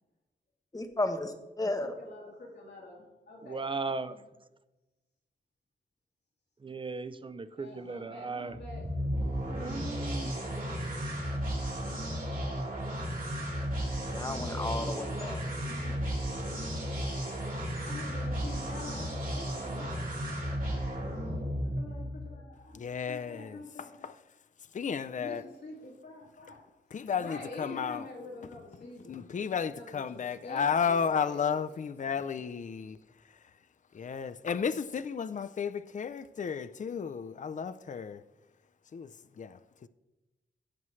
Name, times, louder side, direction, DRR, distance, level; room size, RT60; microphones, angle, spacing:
voice 1, 0.7-1.9 14.1-15.4, left 2 dB, 20° left, 1.0 m, -33 dB
voice 2, 1.6-3.7 4.1-4.2 7.6-8.9 14.4-15.2 15.6-16.3 17.7-20.0 21.8-22.8 23.1-24.1 25.2-26.7 27.0-29.4 29.8-31.6, left 2 dB, 65° left, 3.4 m, -46 dB
voice 3, 3.4-4.2 6.6-8.6 9.5-10.4, right 4 dB, 30° right, 0.5 m, -37 dB
sound 1, 8.5-22.2, equal, 50° right, 3.2 m, -34 dB
voice 4, 22.7-24.2 24.7-25.4 26.9-28.1 28.8-33.0 33.3-33.4 33.9-38.2 38.9-39.9, left 6 dB, 45° left, 0.4 m, -33 dB
16.5 x 7.5 x 3.2 m
wide cardioid pair, 140°, 18 cm